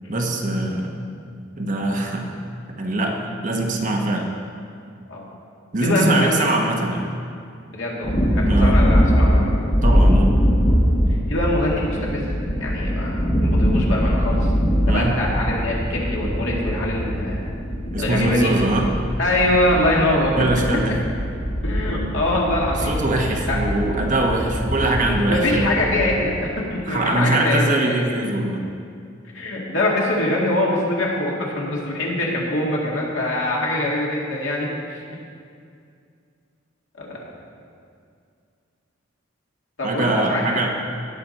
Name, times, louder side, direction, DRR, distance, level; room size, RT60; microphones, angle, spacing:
voice 1, 0.1-1.1 1.6-2.3 2.7-3.2 3.4-4.3 5.7-7.1 8.5-8.8 9.8-10.3 14.9-15.2 17.9-18.9 20.3-21.0 22.8-25.7 26.9-28.6 39.8-40.7, right 2 dB, 40° right, 1 dB, 1.1 m, -22 dB
voice 2, 5.8-6.5 7.7-9.5 11.3-12.3 12.6-14.5 14.9-17.4 18.0-18.6 19.2-20.4 21.6-22.9 23.5-23.6 25.3-28.1 29.3-35.0 37.0-37.2 39.8-40.7, left 1 dB, 75° left, -3 dB, 2.2 m, -23 dB
sound 1, 8.0-26.3, equal, 30° left, 1.5 m, -22 dB
18.0 x 6.0 x 4.2 m, 2.3 s
head